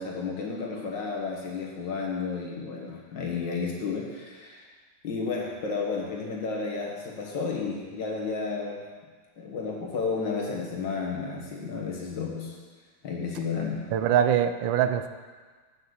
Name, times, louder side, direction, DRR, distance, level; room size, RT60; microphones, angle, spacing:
voice 1, 0.0-4.7 5.0-8.8 9.4-12.6 13.0-13.9, left 4 dB, 70° left, -1 dB, 2.3 m, -32 dB
voice 2, 13.9-15.1, right 9 dB, 85° right, 10 dB, 1.4 m, -23 dB
8.7 x 6.3 x 7.9 m, 1.4 s
omnidirectional pair, 2.0 m